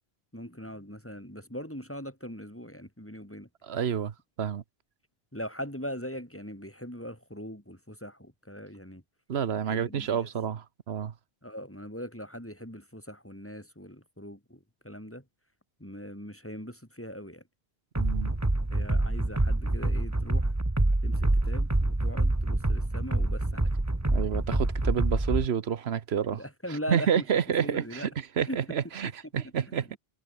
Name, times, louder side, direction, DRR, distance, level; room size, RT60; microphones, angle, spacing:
voice 1, 0.3-3.5 5.3-9.0 9.7-10.3 11.4-15.2 15.8-17.4 18.7-20.5 21.0-23.7 26.3-27.3 27.6-28.1 28.5-28.6 29.7-29.9, equal, 10° left, 5.3 m, -40 dB
voice 2, 3.6-4.1 4.4-4.6 9.3-11.1 18.0-18.3 24.1-26.4 26.9-30.0, right 8 dB, 85° right, 1.2 m, -29 dB
sound 1, 17.9-25.5, right 2 dB, 15° right, 1.4 m, -26 dB
omnidirectional pair, 1.0 m